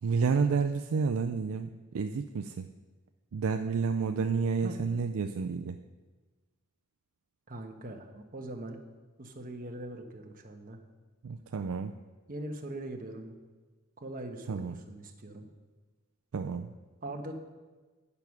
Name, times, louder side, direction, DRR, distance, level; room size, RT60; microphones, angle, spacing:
voice 1, 0.0-2.6 3.3-5.8 11.2-11.9 14.5-14.8 16.3-16.7, right 5 dB, 65° right, 6 dB, 0.4 m, -30 dB
voice 2, 7.5-8.8 9.2-10.8 12.3-13.3 14.0-15.5 17.0-17.3, right 1 dB, 40° right, 3 dB, 1.1 m, -41 dB
9.6 x 6.9 x 5.9 m, 1.3 s
head